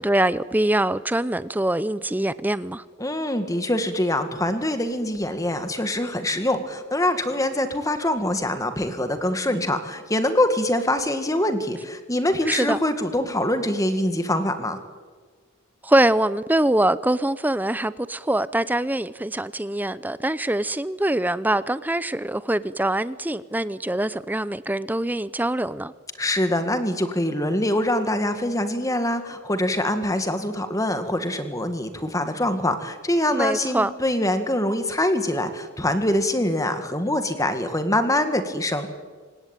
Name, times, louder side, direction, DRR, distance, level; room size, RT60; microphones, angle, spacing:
voice 1, 0.0-2.8 12.5-12.8 15.8-25.9 33.3-33.9, right 1 dB, 10° right, 0.6 m, -23 dB
voice 2, 3.0-14.8 26.2-38.9, left 1 dB, 15° left, 2.0 m, -24 dB
27.5 x 17.0 x 9.1 m
head